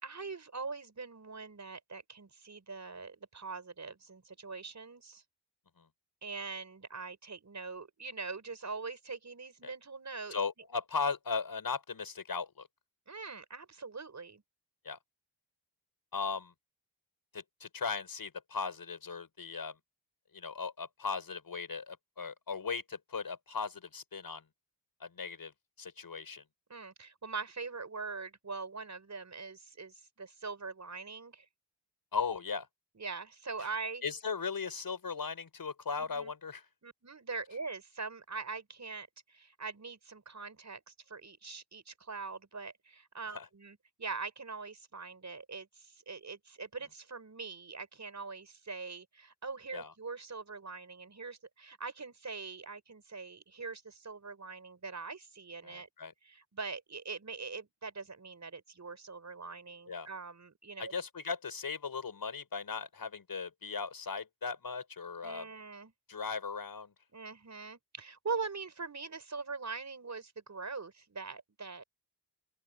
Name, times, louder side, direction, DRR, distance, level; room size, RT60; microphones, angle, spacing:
voice 1, 0.0-5.2 6.2-10.4 13.1-14.4 26.7-31.4 33.0-34.0 35.9-36.3 36.8-55.9 56.2-60.9 65.2-65.9 67.1-71.8, right 4 dB, 40° right, 6.2 m, -43 dB
voice 2, 10.3-12.7 14.8-15.0 16.1-16.5 17.3-19.8 20.3-24.4 25.0-25.5 25.8-26.4 32.1-32.7 34.0-36.6 43.3-43.5 49.7-49.9 55.6-56.1 59.9-60.1 60.8-65.5 66.1-66.9, left 5 dB, 50° left, 5.9 m, -37 dB
open air
cardioid pair, 80°, 44 cm